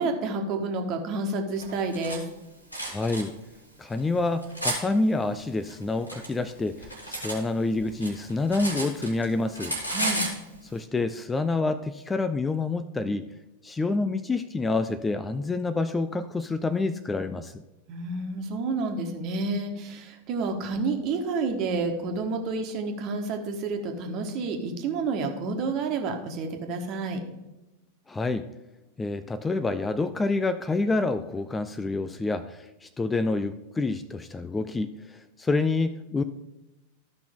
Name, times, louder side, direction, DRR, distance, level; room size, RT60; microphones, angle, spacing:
voice 1, 0.0-2.2 9.9-10.2 17.9-27.2, right 3 dB, 40° right, 4 dB, 1.4 m, -29 dB
Cutlery silverware, 1.6-2.2 2.7-3.2 3.9-4.8 5.7-7.4 7.7-9.3 9.5-10.4, right 1 dB, 90° left, 2.0 m, -32 dB
voice 2, 2.9-3.3 3.8-9.8 10.7-13.3 13.6-17.6 28.1-28.5 29.0-36.2, left 3 dB, 15° left, 11 dB, 0.4 m, -28 dB
13.5 x 5.8 x 3.6 m, 1.0 s
figure-of-eight pair, 90°, 0 cm